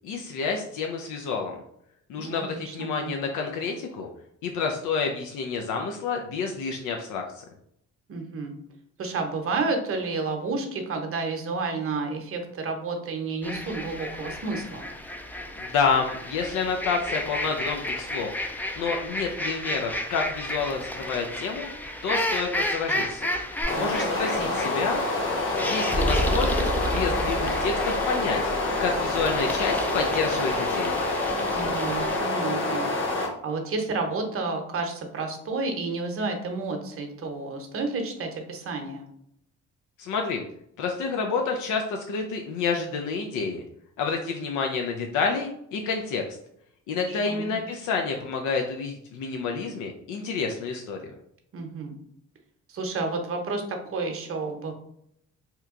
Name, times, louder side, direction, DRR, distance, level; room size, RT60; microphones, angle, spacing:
voice 1, 0.0-1.6 2.1-4.1 4.4-7.4 15.6-18.3 18.8-21.7 22.0-23.3 23.8-25.0 25.6-28.4 28.8-31.0 40.0-40.4 40.8-43.6 44.0-46.2 46.9-51.0, left 5 dB, 85° left, 2 dB, 0.5 m, -29 dB
voice 2, 2.2-3.2 8.1-8.5 9.0-14.9 23.7-24.5 31.5-32.9 33.4-39.0 47.0-47.5 51.5-51.9 52.7-54.7, right 3 dB, 45° right, 4 dB, 0.8 m, -31 dB
sound 1, 13.4-32.2, equal, 5° left, 0.3 m, -32 dB
sound 2, 23.6-33.3, left 2 dB, 40° left, 1.0 m, -27 dB
2.9 x 2.2 x 3.6 m, 0.73 s
cardioid pair, 90°, 30 cm